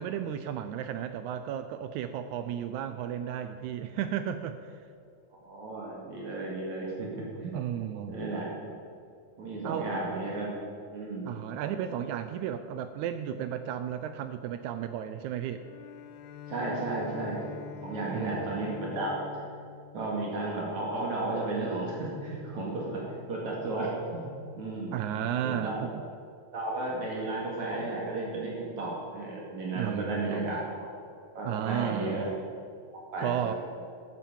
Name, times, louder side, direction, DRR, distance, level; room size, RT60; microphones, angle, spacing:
voice 1, 0.0-4.6 7.5-8.2 9.6-9.9 11.3-15.6 18.1-18.6 24.9-26.0 29.7-30.6 31.4-32.4 33.2-33.5, right 9 dB, 85° right, 10 dB, 1.7 m, -33 dB
voice 2, 5.4-7.6 8.1-8.5 9.4-10.5 10.9-11.4 16.5-17.5 17.8-19.2 19.9-24.3 24.6-25.0 25.4-25.9 26.5-30.9 31.4-32.3 33.1-33.5, right 2 dB, 60° right, -3 dB, 3.4 m, -33 dB
Bowed string instrument, 15.5-21.1, left 6 dB, 80° left, 1.5 m, -45 dB
12.5 x 8.7 x 7.2 m, 2.4 s
omnidirectional pair, 3.9 m